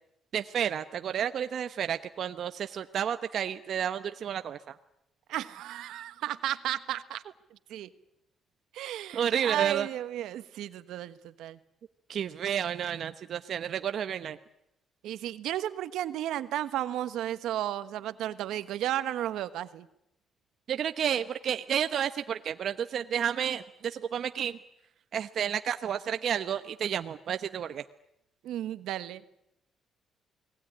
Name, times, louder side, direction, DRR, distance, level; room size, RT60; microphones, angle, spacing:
voice 1, 0.3-4.8 9.1-9.9 12.1-14.4 20.7-24.6 25.1-27.8, right 9 dB, 65° right, 9 dB, 1.0 m, -31 dB
voice 2, 5.3-7.2 7.5-7.9 8.7-11.6 15.0-19.9 28.4-29.2, right 12 dB, 85° right, 12 dB, 1.4 m, -34 dB
29.5 x 19.5 x 9.9 m, 0.83 s
cardioid pair, 85°, 0 cm